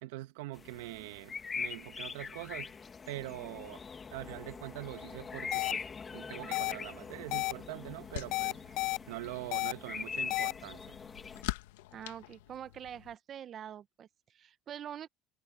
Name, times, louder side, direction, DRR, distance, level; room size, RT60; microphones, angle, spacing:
voice 1, 0.0-2.7 3.1-3.8 4.1-5.8 6.1-8.7 9.1-11.0, right 18 dB, 85° right, 1.5 m, -43 dB
sound 1, 0.5-11.4, left 5 dB, 25° left, 1.9 m, -43 dB
sound 2, 5.5-5.7 6.5-6.7 7.3-7.5 8.3-9.0 9.5-9.7 10.3-10.5, left 22 dB, 65° left, 0.3 m, -31 dB
sound 3, 7.0-13.2, left 18 dB, 85° left, 1.5 m, -46 dB
voice 2, 11.9-15.1, right 9 dB, 45° right, 0.8 m, -45 dB
supercardioid pair, 100°, 0 cm